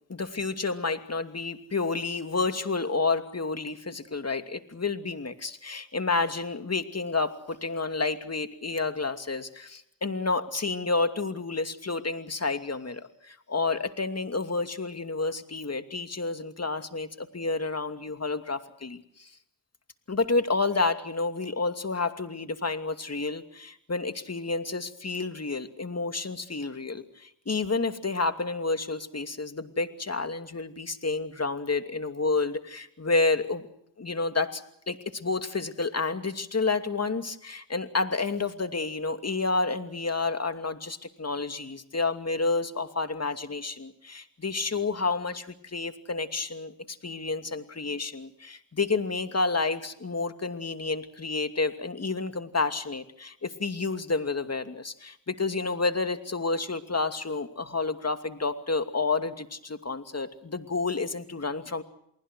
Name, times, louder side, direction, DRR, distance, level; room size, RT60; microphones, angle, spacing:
voice 1, 0.1-19.3 20.1-33.7 34.0-61.8, left 3 dB, 35° left, 8 dB, 2.6 m, -30 dB
29.0 x 19.5 x 6.3 m, 0.73 s
supercardioid pair, 45°, 44 cm